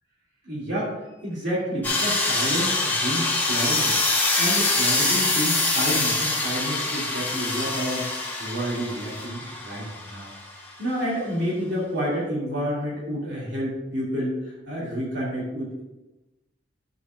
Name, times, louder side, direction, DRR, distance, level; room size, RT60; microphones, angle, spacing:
voice 1, 0.4-10.3 10.8-15.8, equal, 60° right, -6 dB, 2.6 m, -29 dB
sound 1, 1.8-10.4, left 2 dB, 10° left, 1.5 m, -24 dB
11.5 x 7.1 x 2.5 m, 1.1 s
head